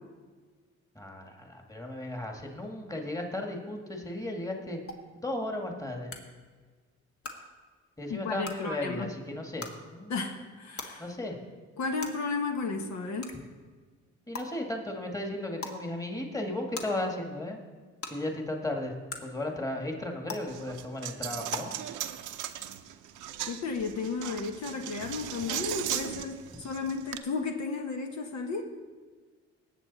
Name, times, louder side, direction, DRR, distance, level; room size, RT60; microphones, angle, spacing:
voice 1, 0.9-4.8 5.1-6.1 8.0-10.2 11.0-11.4 14.3-17.6 18.1-18.9 19.2-21.7, left 1 dB, 10° left, 2 dB, 1.8 m, -35 dB
sound 1, 4.9-5.0 6.1-6.2 7.2-7.3 8.4-8.5 9.6-9.7 10.8-10.9 12.0-12.1 13.2-13.3 14.3-14.4 15.6-15.8 16.7-16.8 18.0-18.1 19.1-19.2 20.3-20.4 21.5-21.6, left 4 dB, 50° left, 1.6 m, -37 dB
voice 2, 8.1-9.1 10.1-11.1 11.8-13.3 23.5-28.6, left 4 dB, 65° left, 3 dB, 1.2 m, -33 dB
Coin (dropping), 20.5-27.2, right 11 dB, 80° right, 0.7 m, -38 dB
18.5 x 7.8 x 4.1 m, 1.4 s
cardioid pair, 90°, 30 cm